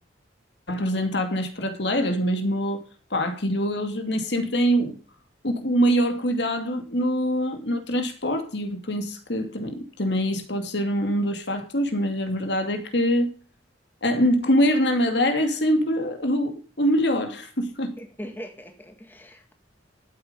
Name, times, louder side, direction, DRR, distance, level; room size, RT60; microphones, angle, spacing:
voice 1, 0.7-2.8 3.1-5.0 5.4-13.3 14.0-17.9, equal, 60° left, 2.4 m, -24 dB
voice 2, 18.0-19.5, equal, 10° left, 1.8 m, -40 dB
12.5 x 9.0 x 5.5 m
head